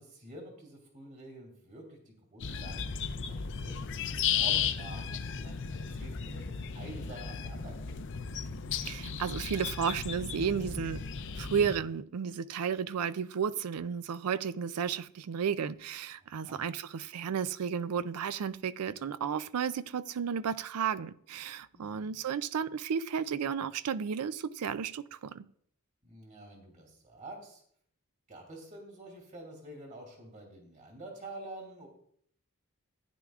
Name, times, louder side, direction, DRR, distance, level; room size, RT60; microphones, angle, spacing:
voice 1, 0.0-8.0 16.2-16.6 21.7-22.2 26.0-27.6 28.3-31.9, right 1 dB, 35° right, 2.8 m, -48 dB
sound 1, 2.4-11.8, left 7 dB, 55° left, 0.5 m, -35 dB
voice 2, 8.8-11.0 11.4-25.4, right 7 dB, 85° right, 0.4 m, -33 dB
15.0 x 9.8 x 2.4 m
head